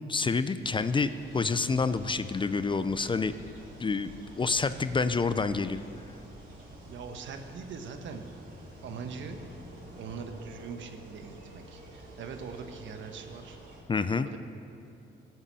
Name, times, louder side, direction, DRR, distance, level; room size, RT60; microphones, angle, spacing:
voice 1, 0.1-3.3 3.8-4.1 4.4-5.8 13.9-14.3, left 4 dB, 25° left, 12 dB, 0.5 m, -28 dB
sound 1, 0.6-13.8, right 1 dB, 50° right, 4.0 m, -49 dB
voice 2, 6.9-8.2 8.8-9.4 10.0-13.6 14.1-14.4, right 5 dB, 70° right, 6 dB, 1.3 m, -42 dB
16.0 x 8.1 x 7.6 m, 2.7 s
cardioid pair, 90°, 20 cm